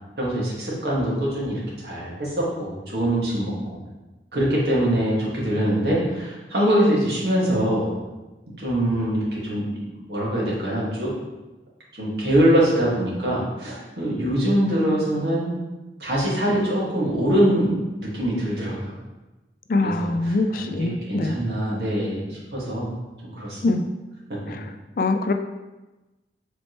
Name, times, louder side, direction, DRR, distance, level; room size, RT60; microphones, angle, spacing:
voice 1, 0.2-3.5 4.3-7.9 8.6-9.8 10.1-11.1 11.9-15.5 16.0-18.9 19.8-22.9 23.2-23.6, right 1 dB, 65° right, -6 dB, 2.0 m, -23 dB
voice 2, 19.7-21.4 23.6-23.8 24.5-24.6 25.0-25.3, left 2 dB, 50° left, 7 dB, 0.4 m, -23 dB
7.2 x 4.4 x 3.1 m, 1.1 s
head